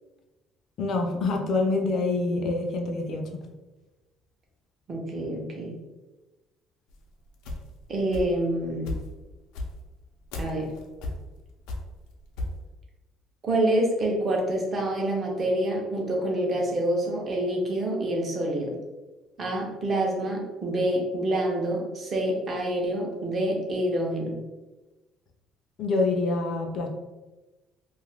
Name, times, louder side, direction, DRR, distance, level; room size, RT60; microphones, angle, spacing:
voice 1, 0.8-3.4 25.8-26.9, left 3 dB, 40° left, 3 dB, 0.4 m, -26 dB
voice 2, 4.9-5.7 7.9-8.9 10.3-10.7 13.4-18.8 19.4-24.4, right 1 dB, 25° right, -1 dB, 0.6 m, -27 dB
sound 1, 6.9-8.5 8.8-12.6, left 2 dB, 90° left, 0.5 m, -35 dB
2.6 x 2.4 x 3.4 m, 1.1 s
cardioid pair, 175°, 0 cm